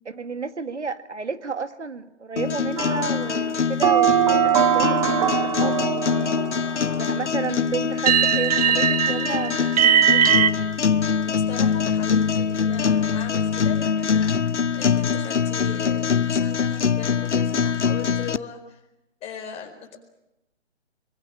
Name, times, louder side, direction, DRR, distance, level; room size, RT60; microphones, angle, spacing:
voice 1, 0.1-6.4 6.9-10.5, right 5 dB, 80° right, 10 dB, 2.0 m, -32 dB
sound 1, 2.4-18.4, left 6 dB, 80° left, 0.9 m, -23 dB
sound 2, 2.8-3.3 3.8-6.9 8.1-10.5, right 10 dB, 35° right, 1.0 m, -20 dB
voice 2, 11.2-18.8 19.2-20.0, left 7 dB, 15° left, 2 dB, 4.6 m, -38 dB
25.0 x 22.0 x 8.7 m, 0.89 s
figure-of-eight pair, 140°, 34 cm